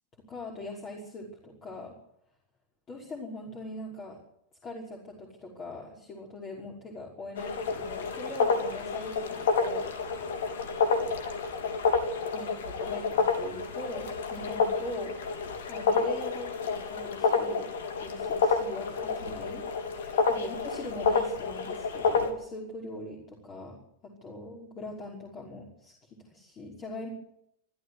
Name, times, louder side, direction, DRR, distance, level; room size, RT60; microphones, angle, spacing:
voice 1, 0.2-2.0 2.9-4.2 4.6-9.9 10.9-11.1 12.3-15.2 15.7-17.7 18.0-23.8 24.0-27.1, left 2 dB, 25° left, -1 dB, 5.5 m, -42 dB
sound 1, 7.4-22.3, left 4 dB, 60° left, 3.4 m, -29 dB
25.5 x 13.5 x 8.1 m, 0.73 s
figure-of-eight pair, 90°, 0 cm